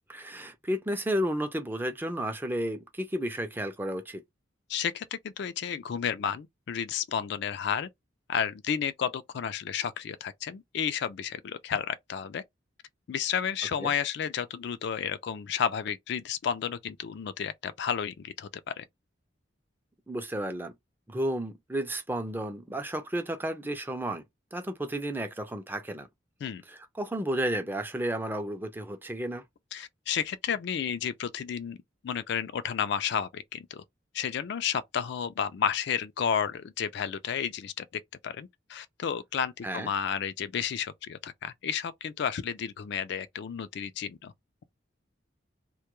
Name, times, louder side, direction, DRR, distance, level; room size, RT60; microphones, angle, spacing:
voice 1, 0.0-4.2 13.8-13.9 20.1-20.7 21.1-24.2 24.5-26.1 26.7-29.4 39.6-39.9, right 1 dB, 10° right, 0.4 m, -32 dB
voice 2, 4.7-7.9 8.3-12.4 13.1-18.5 18.8-18.9 26.4-26.6 29.7-31.8 32.0-33.8 34.1-37.9 38.2-44.3, left 8 dB, 60° left, 0.3 m, -32 dB
2.2 x 2.2 x 2.9 m
head